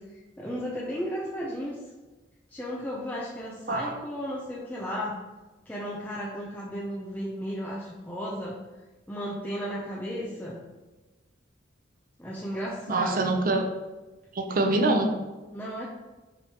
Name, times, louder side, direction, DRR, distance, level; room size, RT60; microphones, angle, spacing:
voice 1, 0.1-1.8 2.5-5.2 5.7-8.6 9.1-10.6 12.2-13.3 15.5-15.9, equal, 10° left, -6 dB, 0.7 m, -34 dB
voice 2, 12.9-13.6 14.4-15.1, right 2 dB, 45° right, 4 dB, 0.6 m, -24 dB
5.1 x 4.7 x 4.3 m, 1.2 s
head